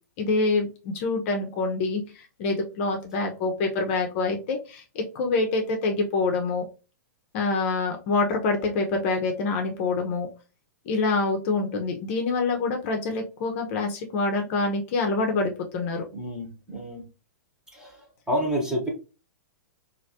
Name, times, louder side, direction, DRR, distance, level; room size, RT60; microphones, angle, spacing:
voice 1, 0.2-6.6 7.3-10.3 10.9-16.0, left 3 dB, 45° left, 3 dB, 0.6 m, -26 dB
voice 2, 16.1-17.1 17.7-18.9, equal, 5° right, -1 dB, 1.1 m, -29 dB
3.1 x 2.5 x 2.7 m, 0.32 s
figure-of-eight pair, 110°, 10 cm